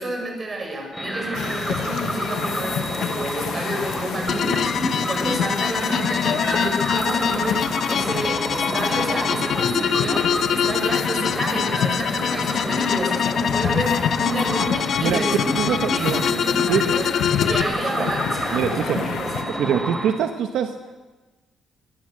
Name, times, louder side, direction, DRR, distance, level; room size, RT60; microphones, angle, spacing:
voice 1, 0.0-17.1 17.5-19.8, right 1 dB, 20° right, 2 dB, 6.1 m, -30 dB
sound 1, 0.9-20.1, right 1 dB, 5° right, 3.4 m, -30 dB
sound 2, 1.3-19.4, left 8 dB, 65° left, 1.3 m, -29 dB
sound 3, 4.3-17.6, left 8 dB, 45° left, 0.7 m, -25 dB
voice 2, 15.6-16.2 16.7-16.8 18.0-18.1 18.5-19.1 19.5-20.7, right 8 dB, 75° right, 6 dB, 1.4 m, -24 dB
21.5 x 19.0 x 7.9 m, 1.2 s
cardioid pair, 170°, 0 cm